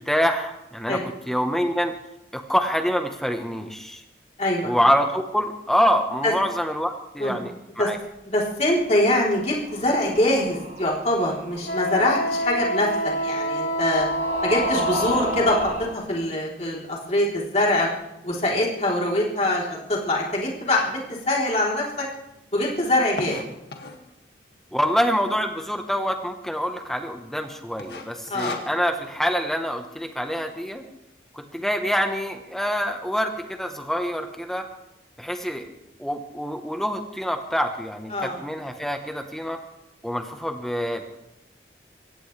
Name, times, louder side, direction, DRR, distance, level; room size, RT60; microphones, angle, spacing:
voice 1, 0.0-1.9 2.3-4.0 4.6-8.0 24.7-30.8 31.3-34.7 35.2-35.7 36.0-39.6 40.0-41.0, equal, ahead, 5 dB, 1.2 m, -26 dB
voice 2, 4.4-4.7 6.2-6.3 7.2-7.4 7.8-7.9 8.3-12.9 13.2-14.1 14.4-17.9 18.2-21.0 21.3-22.1 22.5-23.4 28.3-28.6 38.1-38.4, left 1 dB, 35° left, -3 dB, 3.7 m, -23 dB
sound 1, 9.3-15.9, right 2 dB, 40° right, 2.3 m, -34 dB
Wind instrument woodwind instrument, 11.6-15.8, equal, 90° left, 6.2 m, -27 dB
sound 2, 20.7-20.8 21.4-21.5 21.6-21.7 22.0-24.1 24.8-25.2 25.5-25.6 25.8-25.9 26.5-26.8 27.1-27.4 27.8-29.1, left 3 dB, 60° left, 2.1 m, -36 dB
24.0 x 17.0 x 3.4 m, 0.88 s
head